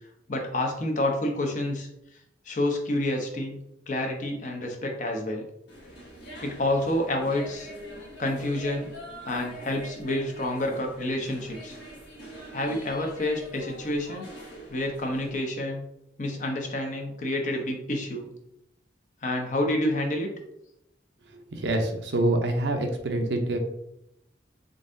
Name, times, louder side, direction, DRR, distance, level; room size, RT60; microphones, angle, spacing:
voice 1, 0.3-1.9 2.5-3.6 3.9-5.4 6.4-7.7 8.2-8.9 9.3-11.8 12.5-14.3 14.7-15.8 16.2-18.3 19.2-20.3, left 1 dB, 45° left, 2 dB, 0.7 m, -28 dB
sound 1, 5.7-15.4, right 1 dB, 80° left, 1.3 m, -44 dB
voice 2, 21.5-23.6, right 2 dB, 80° right, 4 dB, 0.7 m, -26 dB
3.9 x 3.6 x 2.6 m, 0.81 s
head